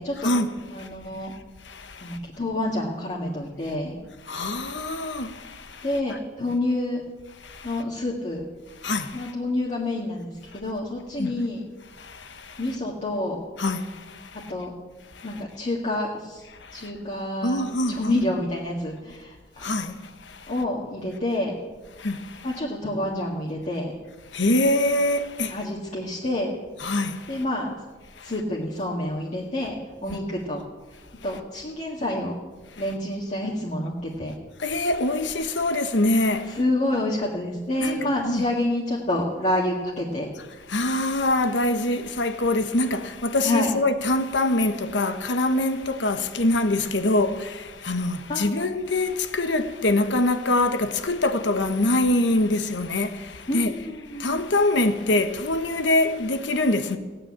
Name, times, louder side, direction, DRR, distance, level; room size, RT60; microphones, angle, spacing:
voice 1, 0.0-0.3 0.7-1.3 2.0-4.0 5.8-7.0 7.6-8.4 9.1-11.6 12.6-13.4 14.5-14.7 15.2-16.4 16.7-19.4 20.5-21.5 22.4-23.9 25.5-26.5 27.3-27.8 28.2-30.6 31.2-32.3 32.8-34.3 36.5-40.3 43.4-43.7 48.3-48.7 53.5-54.4, left 1 dB, 40° left, 1.9 m, -28 dB
voice 2, 1.6-2.2 4.3-5.9 7.4-7.7 8.8-9.3 11.2-11.3 12.0-12.6 13.6-14.5 15.2-15.3 16.6-16.9 17.4-18.1 19.6-20.0 20.3-20.5 22.0-22.5 24.3-25.6 26.8-27.4 28.2-28.3 30.1-30.2 34.6-36.6 37.8-38.0 38.2-38.5 40.7-53.7 54.1-57.0, left 2 dB, 85° left, 1.2 m, -24 dB
16.5 x 9.2 x 8.8 m
head